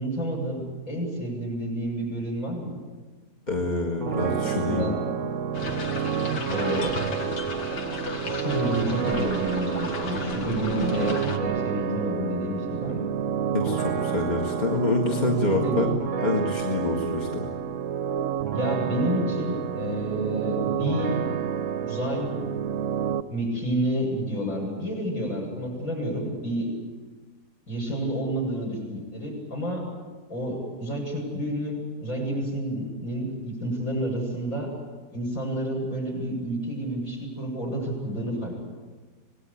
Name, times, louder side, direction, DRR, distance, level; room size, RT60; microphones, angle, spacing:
voice 1, 0.0-2.7 4.2-5.0 6.4-6.9 7.5-13.0 15.3-15.8 18.5-21.1 21.8-22.4 23.3-26.7 27.7-29.8 30.3-34.7 35.1-38.6, equal, 50° left, -1 dB, 8.6 m, -30 dB
voice 2, 3.5-4.9 6.0-6.1 13.5-15.9 16.2-17.5, left 3 dB, 25° left, 0 dB, 2.0 m, -26 dB
sound 1, 4.0-23.2, right 8 dB, 55° right, 1.2 m, -29 dB
sound 2, 5.5-11.4, left 3 dB, 90° left, 2.6 m, -34 dB
26.5 x 19.0 x 8.5 m, 1.3 s
omnidirectional pair, 1.8 m